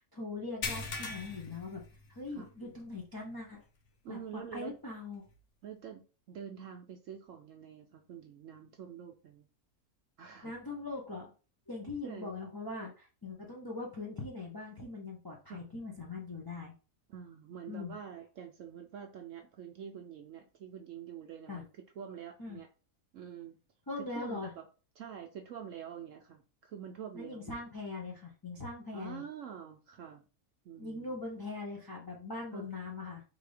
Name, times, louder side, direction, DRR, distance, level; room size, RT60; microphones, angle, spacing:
voice 1, 0.1-1.8 2.1-3.6 4.1-5.2 10.4-11.3 11.7-16.7 17.7-17.9 21.5-21.6 22.4-22.6 23.9-24.5 27.1-29.2 30.8-33.2, left 3 dB, 20° left, -3 dB, 0.6 m, -41 dB
sound 1, 0.6-2.5 2.9-3.1 3.5-3.6 5.3-5.4, left 4 dB, 85° left, 1.3 m, -40 dB
voice 2, 4.0-4.7 5.6-9.5 10.2-10.5 12.0-12.4 15.5-15.6 17.1-21.7 22.0-22.7 23.1-23.6 23.9-24.6 25.0-27.7 28.9-30.2 30.6-31.2 32.5-32.7, right 8 dB, 65° right, 3 dB, 0.9 m, -46 dB
3.9 x 2.7 x 4.8 m, 0.35 s
omnidirectional pair, 1.6 m